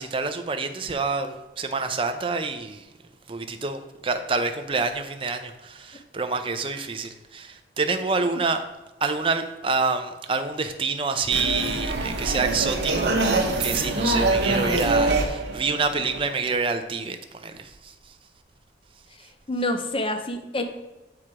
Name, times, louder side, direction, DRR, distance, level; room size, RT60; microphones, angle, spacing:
voice 1, 0.0-2.9 3.3-8.6 9.0-18.2, right 4 dB, 30° right, 7 dB, 0.5 m, -27 dB
sound 1, 11.3-16.5, right 2 dB, 60° right, 1.1 m, -24 dB
voice 2, 19.2-20.8, left 1 dB, 30° left, 6 dB, 0.6 m, -28 dB
7.3 x 4.8 x 4.7 m, 1.1 s
head